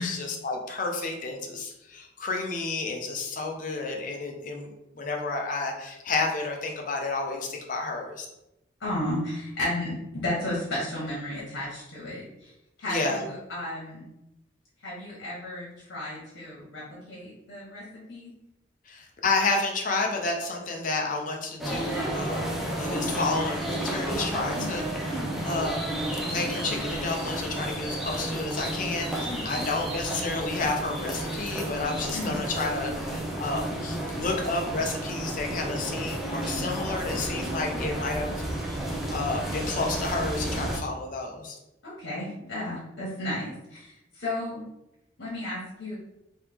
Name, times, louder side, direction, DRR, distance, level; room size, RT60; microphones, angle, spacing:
voice 1, 0.0-8.3 12.8-13.2 18.9-22.4 22.8-25.8 26.2-38.4 39.1-41.6, left 3 dB, 45° left, 1 dB, 0.6 m, -31 dB
voice 2, 8.8-12.5 12.8-14.1 14.8-18.3 25.2-25.5 29.3-29.7 32.1-32.4 41.8-44.6 45.2-46.0, left 1 dB, 80° left, -6 dB, 1.1 m, -34 dB
sound 1, 21.6-40.8, right 1 dB, ahead, 0.5 m, -32 dB
3.2 x 2.9 x 3.5 m, 0.89 s
head